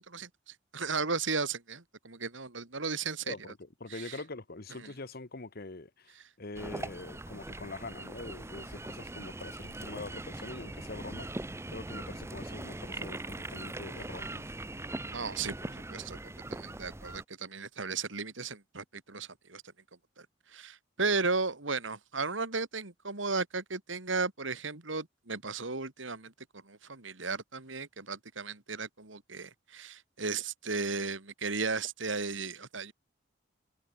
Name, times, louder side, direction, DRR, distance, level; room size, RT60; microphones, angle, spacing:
voice 1, 0.0-3.3 3.9-4.2 4.8-4.9 15.1-16.2 16.5-19.6 20.2-26.3 26.6-32.9, right 4 dB, 90° right, 2.9 m, -35 dB
voice 2, 3.3-11.3 11.7-14.5, left 2 dB, 55° left, 1.3 m, -44 dB
sound 1, 6.5-17.2, right 2 dB, 15° right, 0.8 m, -41 dB
head